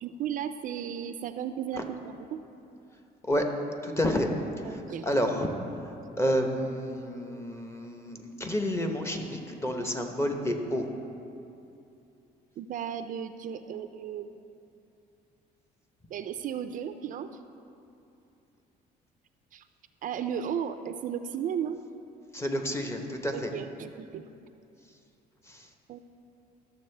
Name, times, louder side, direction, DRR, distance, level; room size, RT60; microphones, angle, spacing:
voice 1, 0.0-2.4 4.6-5.1 12.6-14.5 16.1-17.3 19.5-19.6 20.0-21.8 23.3-24.2 25.9-26.0, right 8 dB, 50° right, 9 dB, 0.4 m, -35 dB
voice 2, 3.8-4.3 5.0-5.5 6.2-10.8 22.3-23.5 25.5-25.6, equal, 15° left, 4 dB, 0.8 m, -29 dB
12.0 x 7.0 x 3.3 m, 2.7 s
cardioid pair, 110°, 17 cm